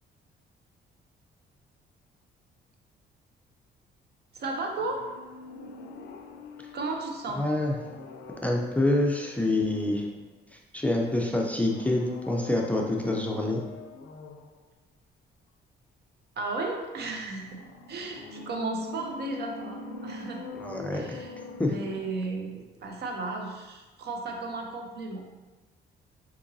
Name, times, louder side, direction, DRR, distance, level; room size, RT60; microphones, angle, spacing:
voice 1, 4.3-5.0 6.7-7.4 16.4-17.6 17.9-20.5 20.9-21.3 21.7-25.2, right 3 dB, 55° right, 2 dB, 0.6 m, -34 dB
sound 1, 4.8-10.5 11.6-14.6 17.4-22.6 22.9-23.0, left 3 dB, 65° left, 0.4 m, -44 dB
voice 2, 7.4-7.7 8.4-10.1 10.7-13.6 20.6-21.2 21.6-21.7, left 1 dB, 5° left, 0 dB, 0.4 m, -26 dB
3.7 x 2.9 x 2.6 m, 1.2 s
cardioid pair, 90°, 20 cm